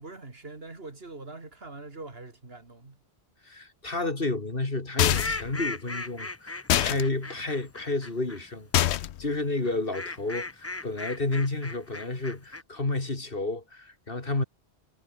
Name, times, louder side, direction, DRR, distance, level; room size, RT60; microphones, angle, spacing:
voice 1, 0.0-3.0 14.4-14.5, right 3 dB, 65° right, 3.0 m, -43 dB
voice 2, 3.4-14.4, left 2 dB, 55° left, 3.3 m, -31 dB
sound 1, 5.0-5.5 6.7-7.0 8.7-9.2, left 12 dB, 80° left, 0.9 m, -24 dB
sound 2, 5.1-8.4 9.6-12.6, left 2 dB, 15° left, 0.7 m, -37 dB
omnidirectional pair, 1.1 m